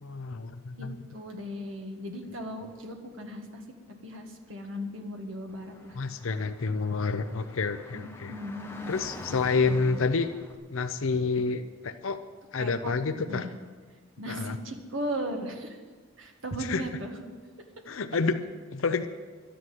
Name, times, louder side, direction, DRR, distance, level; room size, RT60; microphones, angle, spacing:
voice 1, 0.0-0.9 6.0-8.3 8.9-10.3 10.7-12.2 12.5-13.5 14.3-14.6 16.7-16.8 17.9-18.4 18.7-19.1, left 4 dB, 75° left, 9 dB, 0.6 m, -29 dB
voice 2, 0.7-3.6 4.0-6.0 7.9-8.9 9.2-10.0 12.6-13.5 14.2-15.8 16.2-17.2, equal, 70° right, 3 dB, 1.8 m, -37 dB
Car / Traffic noise roadway noise, 5.5-10.6, left 1 dB, 10° left, 1.0 m, -46 dB
13.0 x 10.0 x 7.8 m, 1.5 s
head